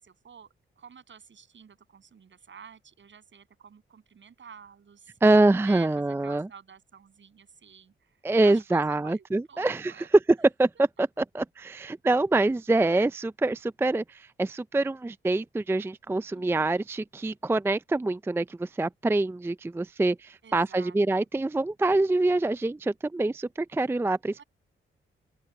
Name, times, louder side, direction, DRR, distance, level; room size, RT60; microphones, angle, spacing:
voice 1, 0.0-5.2 5.6-10.1 16.3-16.8 20.4-21.3 24.4-24.5, right 7 dB, 60° right, 8.0 m, -50 dB
voice 2, 5.2-6.5 8.2-9.9 10.4-10.7 11.0-24.4, right 2 dB, 10° right, 0.4 m, -25 dB
open air
cardioid pair, 65°, 21 cm